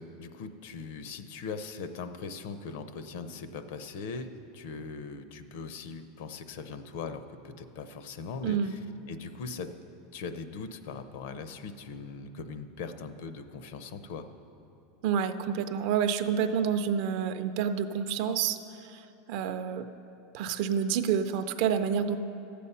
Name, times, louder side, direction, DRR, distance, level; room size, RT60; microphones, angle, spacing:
voice 1, 0.0-9.7 10.1-14.3, left 4 dB, 55° left, 10 dB, 0.6 m, -40 dB
voice 2, 8.4-8.8 15.0-18.6 19.3-19.9 20.3-22.2, right 7 dB, 45° right, 10 dB, 0.4 m, -28 dB
13.0 x 8.4 x 5.6 m, 2.9 s
supercardioid pair, 180°, 0 cm